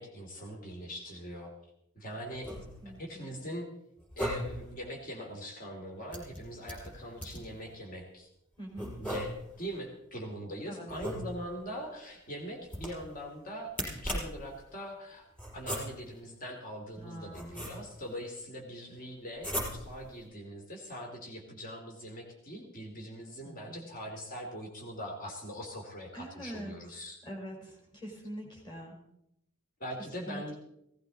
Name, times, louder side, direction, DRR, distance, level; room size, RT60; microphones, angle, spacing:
voice 1, 0.0-1.5 1.9-2.5 3.0-3.7 4.2-8.3 9.0-15.3 15.5-27.2 29.8-30.5, equal, 45° left, 1 dB, 2.6 m, -42 dB
sound 1, 2.3-3.0 4.0-4.7 6.1-7.6 8.8-9.7 10.9-11.7 12.6-13.2 13.7-14.5 15.4-16.2 16.9-18.1 19.4-20.1, equal, 10° left, 5.2 m, -38 dB
voice 2, 2.8-3.3 8.6-8.9 10.7-10.9 17.0-17.6 23.4-23.9 26.1-26.7 27.2-28.9 30.3-30.4, equal, 25° left, 0 dB, 4.3 m, -44 dB
17.0 x 15.5 x 3.9 m, 0.79 s
head